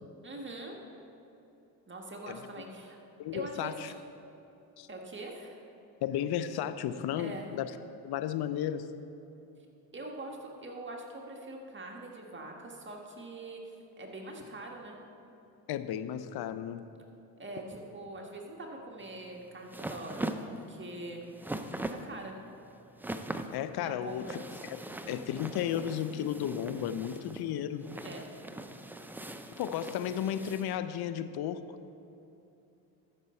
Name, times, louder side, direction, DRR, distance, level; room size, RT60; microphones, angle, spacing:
voice 1, 0.2-0.8 1.9-3.0 3.3-3.9 4.9-5.6 7.2-7.5 9.9-15.0 17.4-20.2 20.5-21.2 21.9-22.4 23.8-24.4 28.0-28.3, right 2 dB, 25° right, 0 dB, 1.6 m, -43 dB
voice 2, 3.2-3.9 4.8-4.9 6.0-7.7 8.0-8.9 15.7-16.8 23.5-24.4 25.1-27.8 29.6-31.8, left 10 dB, 60° left, 12 dB, 0.6 m, -34 dB
sound 1, 19.0-30.7, right 1 dB, 5° right, 0.5 m, -41 dB
14.0 x 6.8 x 4.4 m, 2.9 s
supercardioid pair, 70°, 43 cm